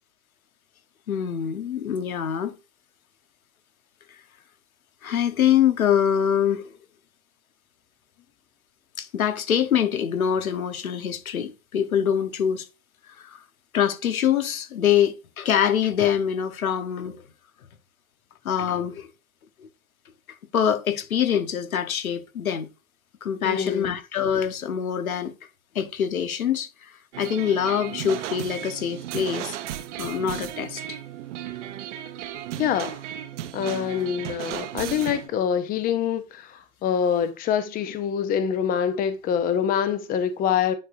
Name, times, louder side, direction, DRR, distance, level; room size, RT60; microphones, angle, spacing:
voice 1, 1.1-2.5 5.0-6.7 9.0-12.7 13.1-13.4 13.7-17.2 18.4-19.1 20.5-22.7 23.2-25.3 25.7-26.7 27.2-29.6 30.0-31.0, left 9 dB, 85° left, 1.3 m, -24 dB
voice 2, 23.4-24.0 32.6-33.0 33.5-40.7, left 8 dB, 20° left, 0.7 m, -25 dB
sound 1, 27.1-35.3, right 12 dB, 60° right, 1.0 m, -35 dB
9.9 x 4.6 x 2.7 m
hypercardioid pair, 125°, 41 cm